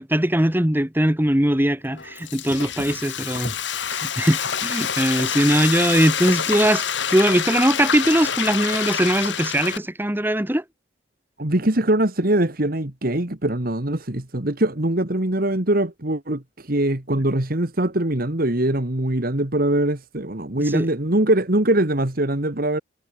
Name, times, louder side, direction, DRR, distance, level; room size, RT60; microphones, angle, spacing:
voice 1, 0.0-3.5 3.8-10.6 20.6-20.9, right 1 dB, 10° right, 1.6 m, -21 dB
Frying (food), 1.9-9.8, left 8 dB, 75° left, 2.4 m, -27 dB
voice 2, 11.4-22.8, right 1 dB, 50° right, 2.1 m, -22 dB
head